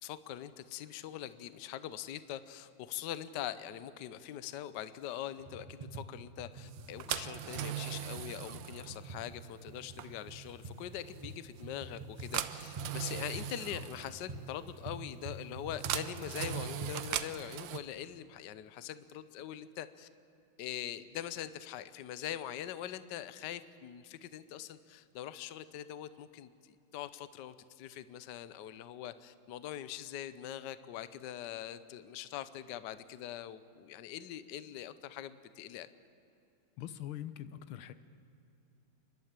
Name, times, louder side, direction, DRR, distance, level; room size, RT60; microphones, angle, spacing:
voice 1, 0.0-20.1 20.6-35.9, left 11 dB, 65° left, 14 dB, 1.3 m, -43 dB
sound 1, 5.4-17.1, right 2 dB, 25° right, 1.1 m, -46 dB
sound 2, 6.7-17.8, right 11 dB, 70° right, 1.4 m, -41 dB
voice 2, 36.8-37.9, left 11 dB, 90° left, 13 dB, 1.7 m, -43 dB
30.0 x 12.0 x 8.9 m, 2.7 s
omnidirectional pair, 2.2 m